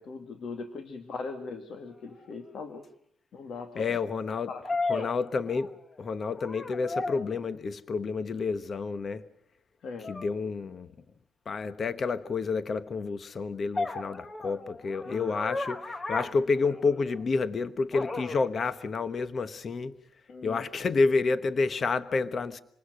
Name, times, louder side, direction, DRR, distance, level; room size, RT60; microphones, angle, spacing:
voice 1, 0.0-2.8 3.3-4.0 4.5-4.6 4.9-5.1 9.8-10.2 15.0-15.3 20.3-20.7, left 4 dB, 60° left, 2.3 m, -40 dB
sound 1, 2.3-2.4 4.6-6.0 6.3-7.4 10.0-10.3 13.8-17.2 17.9-18.5, left 3 dB, 25° left, 1.4 m, -34 dB
voice 2, 3.8-4.5 4.9-5.7 6.0-9.2 10.1-10.9 11.5-20.0 20.4-22.6, left 4 dB, 45° left, 1.1 m, -29 dB
27.0 x 20.0 x 6.4 m
cardioid pair, 90°, 0 cm